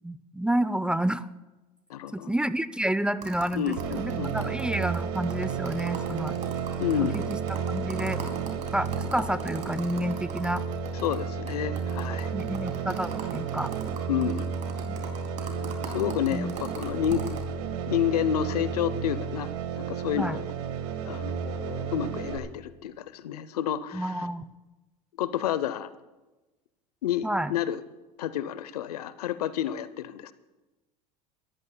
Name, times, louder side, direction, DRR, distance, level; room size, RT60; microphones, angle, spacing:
voice 1, 0.0-1.3 2.1-6.4 7.0-7.2 7.7-8.2 8.7-10.6 12.3-13.7 14.9-15.0 16.3-16.5 20.1-20.4 23.9-24.5 27.2-27.5, right 1 dB, 5° right, 15 dB, 0.5 m, -29 dB
voice 2, 1.9-2.3 3.5-4.6 6.8-7.2 11.0-12.3 14.1-14.5 15.8-17.3 17.9-19.5 19.8-20.4 21.1-24.3 25.2-25.9 27.0-27.8 28.2-30.3, left 10 dB, 85° left, 16 dB, 0.7 m, -30 dB
sound 1, 3.2-11.2 11.5-11.6 11.8-17.4, right 5 dB, 35° right, 3.8 m, -40 dB
sound 2, 3.8-22.4, right 6 dB, 75° right, 1.6 m, -32 dB
26.0 x 14.0 x 2.2 m, 1.1 s
hypercardioid pair, 80°, 20 cm